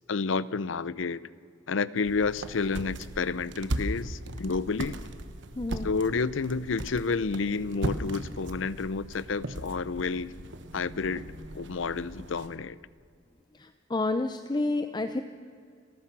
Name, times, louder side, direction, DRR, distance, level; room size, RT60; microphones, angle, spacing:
voice 1, 0.1-1.2 1.7-5.0 5.8-10.3 10.7-11.2 11.5-12.8, left 4 dB, 90° left, 18 dB, 0.6 m, -30 dB
sound 1, 2.0-12.6, right 1 dB, 70° right, 1.2 m, -38 dB
voice 2, 5.6-5.9 13.5-15.2, left 2 dB, 20° left, 9 dB, 0.6 m, -29 dB
29.5 x 14.5 x 6.1 m, 2.3 s
head